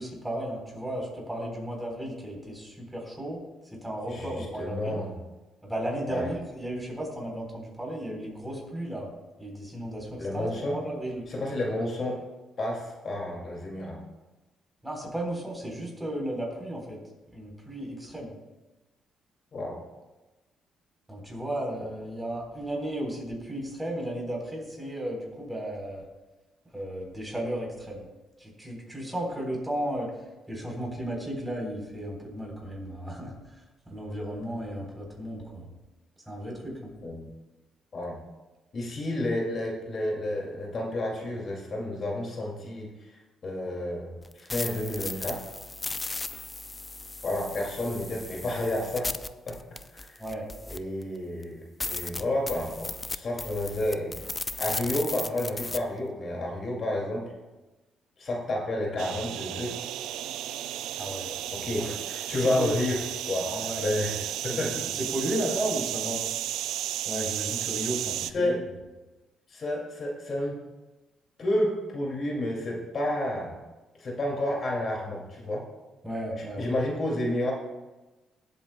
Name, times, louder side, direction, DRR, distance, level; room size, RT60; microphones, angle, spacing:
voice 1, 0.0-3.4 3.7-5.0 5.6-9.1 9.4-11.3 14.8-17.0 17.3-18.3 21.1-26.0 26.7-28.1 28.4-30.1 30.5-33.3 33.9-35.7 36.3-36.9 50.2-50.5 61.0-61.4 61.8-61.9 62.4-62.7 63.4-63.9 64.4-66.2 67.1-68.5 76.0-76.7, right 1 dB, 10° right, -1 dB, 3.7 m, -34 dB
voice 2, 4.1-5.1 6.1-6.3 10.2-10.8 11.3-12.2 12.6-14.0 19.5-19.8 37.0-37.3 37.9-38.2 38.7-45.4 47.2-49.1 49.5-49.6 49.9-50.1 50.7-54.1 54.6-57.2 58.2-59.9 61.5-63.0 63.3-63.5 63.8-64.8 68.2-68.6 69.5-70.6 71.4-73.6 74.0-75.6 76.6-77.5, left 1 dB, 50° left, -1 dB, 2.3 m, -30 dB
sound 1, 44.2-51.0 51.4-51.5 51.8-55.8, left 2 dB, 20° left, 0.5 m, -36 dB
sound 2, 59.0-68.3, right 12 dB, 90° right, 0.3 m, -33 dB
20.0 x 8.1 x 2.2 m, 1.1 s
cardioid pair, 90°, 0 cm